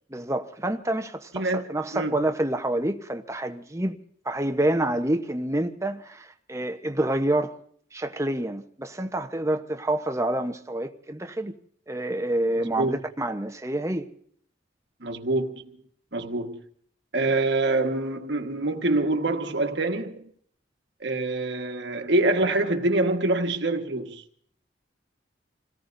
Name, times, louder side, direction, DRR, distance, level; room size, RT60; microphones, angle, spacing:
voice 1, 0.1-4.0 4.2-7.6 7.9-11.5 11.9-14.1, right 1 dB, 15° right, 0.9 m, -27 dB
voice 2, 12.6-13.0 15.0-15.8 16.1-16.6 17.1-20.2 21.0-24.2, right 2 dB, 65° right, 1.5 m, -25 dB
28.0 x 18.0 x 2.7 m
head